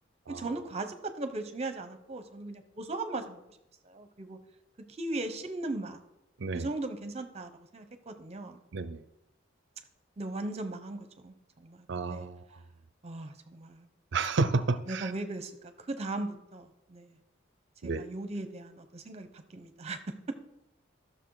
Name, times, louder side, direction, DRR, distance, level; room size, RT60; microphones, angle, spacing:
voice 1, 0.3-3.4 3.8-4.4 4.9-6.0 6.5-8.6 10.2-12.3 13.0-13.9 14.9-17.1 17.8-20.3, right 2 dB, 30° right, 9 dB, 0.9 m, -38 dB
voice 2, 11.9-12.4 14.1-15.1 17.8-18.1, right 3 dB, 60° right, 13 dB, 0.5 m, -30 dB
12.5 x 6.5 x 4.8 m, 0.87 s
head